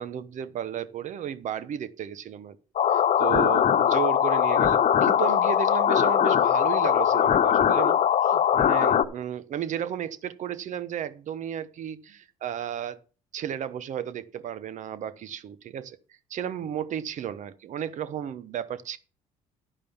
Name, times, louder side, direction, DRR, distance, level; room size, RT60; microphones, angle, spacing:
voice 1, 0.0-2.6 2.9-13.0 13.3-16.0 16.3-19.0, right 9 dB, 60° right, 1.0 m, -34 dB
sound 1, 2.8-9.0, left 9 dB, 55° left, 1.0 m, -21 dB
11.0 x 5.1 x 7.1 m
supercardioid pair, 75°, 15 cm